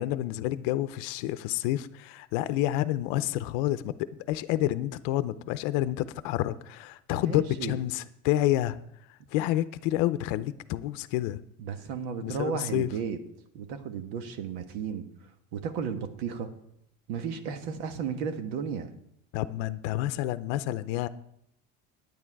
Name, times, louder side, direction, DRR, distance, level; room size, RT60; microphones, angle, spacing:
voice 1, 0.0-3.9 4.3-8.8 9.3-11.4 12.2-12.9 19.3-21.1, left 14 dB, 80° left, 14 dB, 0.6 m, -29 dB
voice 2, 7.1-7.8 11.6-13.2 13.5-15.0 15.5-16.5 17.1-18.9, right 6 dB, 90° right, 7 dB, 1.4 m, -34 dB
10.0 x 9.4 x 4.7 m, 0.74 s
cardioid pair, 155°, 31 cm